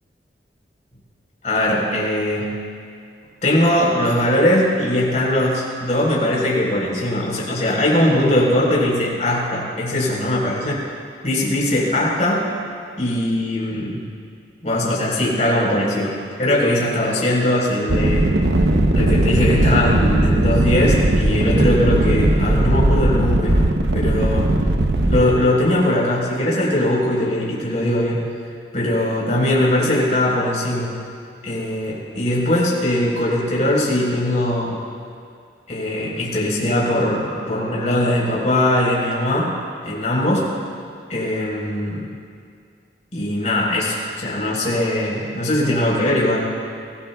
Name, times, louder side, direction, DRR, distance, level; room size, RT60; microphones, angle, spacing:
voice 1, 1.4-2.5 3.4-10.8 11.2-12.5 13.0-14.1 14.6-18.3 18.9-24.6 25.1-28.3 28.7-31.0 31.4-34.8 35.7-39.5 39.8-40.4 41.1-42.1 43.1-46.5, left 1 dB, 45° left, -5 dB, 4.3 m, -20 dB
sound 1, 17.9-25.3, right 1 dB, 80° right, 0.9 m, -18 dB
24.5 x 16.5 x 2.4 m, 2.3 s
head